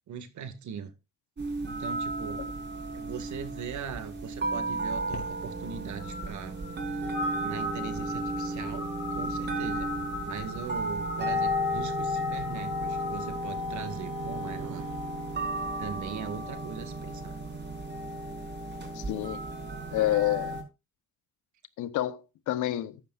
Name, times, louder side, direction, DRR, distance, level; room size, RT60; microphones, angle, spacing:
voice 1, 0.1-0.9 1.7-2.5 2.9-6.6 6.8-7.1 7.4-9.9 10.2-14.9 15.8-17.4, right 7 dB, 70° right, 2.2 m, -40 dB
sound 1, 1.4-20.6, right 1 dB, 35° right, 4.7 m, -34 dB
sound 2, 4.9-13.4, left 2 dB, 50° left, 4.7 m, -39 dB
Wind instrument woodwind instrument, 12.4-16.9, right 6 dB, 55° right, 4.0 m, -48 dB
voice 2, 18.9-19.4 19.9-20.6 21.8-23.0, left 14 dB, 85° left, 1.1 m, -29 dB
14.0 x 10.0 x 2.5 m
cardioid pair, 90°, 30 cm